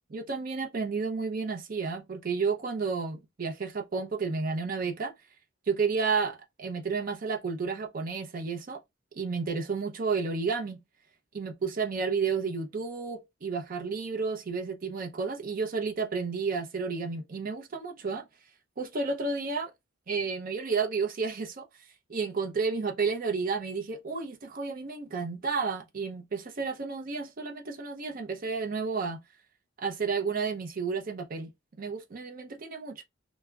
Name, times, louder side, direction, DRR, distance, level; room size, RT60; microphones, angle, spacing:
voice 1, 0.1-5.1 5.7-8.8 9.1-10.8 11.3-18.2 18.8-19.7 20.1-21.6 22.1-29.2 29.8-31.5 31.8-33.0, right 4 dB, 45° right, 0.5 m, -31 dB
2.3 x 2.0 x 3.2 m
head